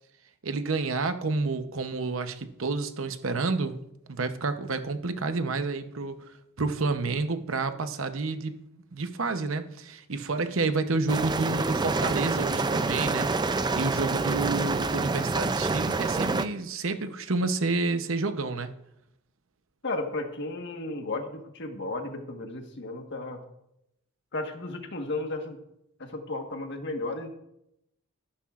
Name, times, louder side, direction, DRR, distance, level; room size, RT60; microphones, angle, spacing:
voice 1, 0.4-3.8 4.1-6.2 6.6-8.5 8.9-18.7, right 3 dB, 70° right, 9 dB, 0.9 m, -29 dB
sound 1, 11.1-16.4, right 3 dB, 20° right, 0.4 m, -27 dB
voice 2, 19.8-23.4 24.3-25.6 26.0-27.3, left 2 dB, 55° left, 4 dB, 1.5 m, -34 dB
14.0 x 11.5 x 2.5 m, 0.81 s
head